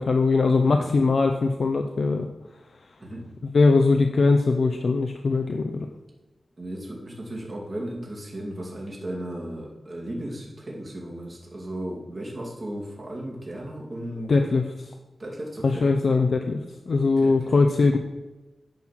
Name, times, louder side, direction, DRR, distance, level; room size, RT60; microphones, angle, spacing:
voice 1, 0.0-2.3 3.4-5.9 14.3-14.6 15.6-16.6 16.9-18.0, left 3 dB, 55° left, 4 dB, 0.6 m, -21 dB
voice 2, 6.6-14.3 15.2-15.9 17.2-17.6, right 1 dB, 30° right, -3 dB, 2.3 m, -35 dB
9.3 x 4.6 x 5.9 m, 1.1 s
wide cardioid pair, 155°, 0 cm